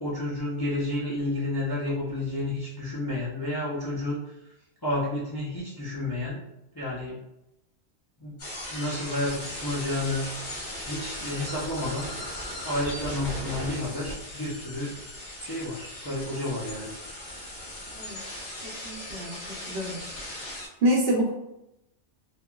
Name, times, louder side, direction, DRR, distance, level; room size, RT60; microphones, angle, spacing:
voice 1, 0.0-4.3 4.8-6.4 6.7-7.2 8.2-8.4 8.7-10.3 10.8-12.1 12.6-15.0 15.4-16.9, left 1 dB, 35° left, -8 dB, 0.4 m, -31 dB
sound 1, 8.4-20.7, left 1 dB, 50° left, 0.8 m, -38 dB
voice 2, 18.6-19.4 19.7-20.5 20.8-21.3, right 1 dB, 65° right, -1 dB, 0.7 m, -27 dB
2.8 x 2.3 x 2.2 m, 0.86 s
omnidirectional pair, 1.2 m